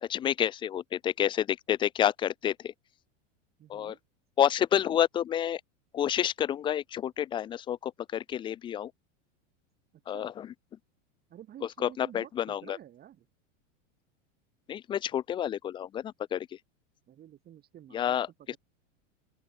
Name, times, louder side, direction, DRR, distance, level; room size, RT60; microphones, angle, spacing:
voice 1, 0.0-2.7 3.7-4.0 4.4-5.6 5.9-8.9 10.1-10.5 11.8-12.8 14.7-16.6 17.9-18.6, left 10 dB, 15° left, 0.4 m, -29 dB
voice 2, 3.6-4.0 10.1-10.3 11.3-13.3 17.1-18.2, right 11 dB, 25° right, 2.9 m, -50 dB
supercardioid pair, 150°, 38 cm